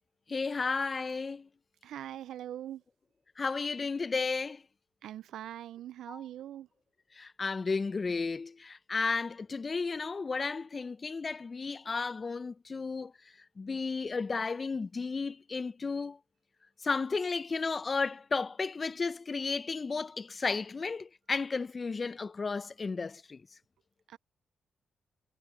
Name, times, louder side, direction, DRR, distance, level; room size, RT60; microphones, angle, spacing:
voice 1, 0.3-1.5 3.4-4.6 6.1-6.2 7.1-13.1 13.6-16.2 16.8-23.4, left 4 dB, 45° left, 0.7 m, -33 dB
voice 2, 1.8-2.8 5.0-6.7 24.1-24.2, right 11 dB, 80° right, 0.6 m, -42 dB
supercardioid pair, 45°, 0 cm